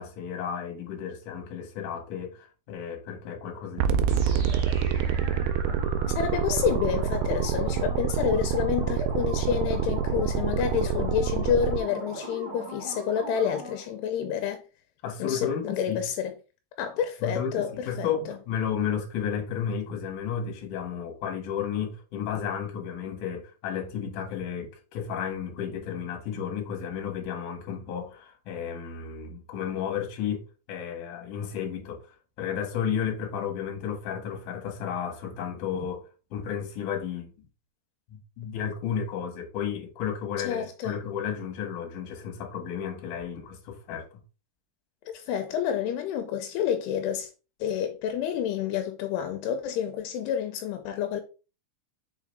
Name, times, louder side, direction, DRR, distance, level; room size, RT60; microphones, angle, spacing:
voice 1, 0.0-4.4 15.0-16.0 17.2-30.4 30.7-32.0 32.4-36.0 36.3-37.3 38.1-44.2, left 8 dB, 60° left, 2.7 m, -33 dB
sound 1, 3.8-11.8, right 8 dB, 80° right, 2.3 m, -27 dB
sound 2, 4.1-13.9, right 1 dB, 50° right, 2.5 m, -39 dB
voice 2, 6.1-14.6 15.2-16.3 16.8-18.4 40.4-41.0 45.1-47.3 47.6-51.2, left 8 dB, 85° left, 2.7 m, -29 dB
6.1 x 4.8 x 3.4 m
omnidirectional pair, 4.8 m